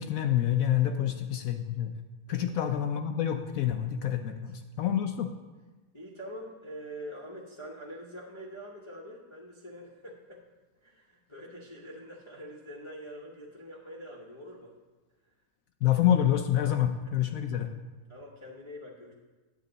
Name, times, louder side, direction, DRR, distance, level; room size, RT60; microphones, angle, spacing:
voice 1, 0.0-1.9 2.3-5.3 15.8-17.7, left 10 dB, 70° left, 6 dB, 0.9 m, -27 dB
voice 2, 0.8-1.2 2.3-2.5 4.2-4.4 5.9-10.4 10.8-14.7 18.1-19.1, equal, 25° left, -5 dB, 0.8 m, -45 dB
9.4 x 8.1 x 4.0 m, 1.2 s
omnidirectional pair, 1.7 m